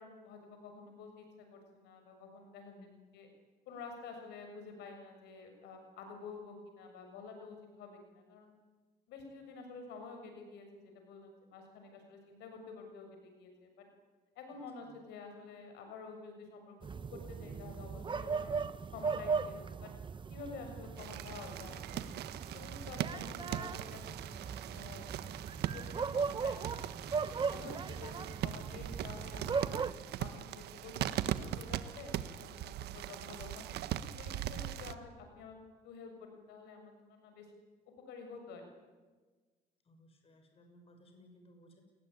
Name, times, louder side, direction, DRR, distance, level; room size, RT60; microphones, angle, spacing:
voice 1, 0.0-2.7 3.1-3.3 3.7-8.5 9.1-13.9 14.4-16.7 17.1-18.5 18.9-19.9 20.3-22.1 22.5-25.4 25.7-26.9 27.5-29.9 30.2-33.7 34.2-35.6 35.8-37.5 37.9-38.7, left 4 dB, 85° left, 5 dB, 6.9 m, -50 dB
voice 2, 2.6-3.1 14.5-14.9 39.8-41.8, left 1 dB, 35° left, 5 dB, 6.6 m, -61 dB
sound 1, 16.8-29.9, right 5 dB, 30° right, 0.9 m, -38 dB
sound 2, 21.0-34.9, right 11 dB, 75° right, 1.5 m, -40 dB
29.0 x 21.0 x 9.8 m, 1.4 s
cardioid pair, 110°, 17 cm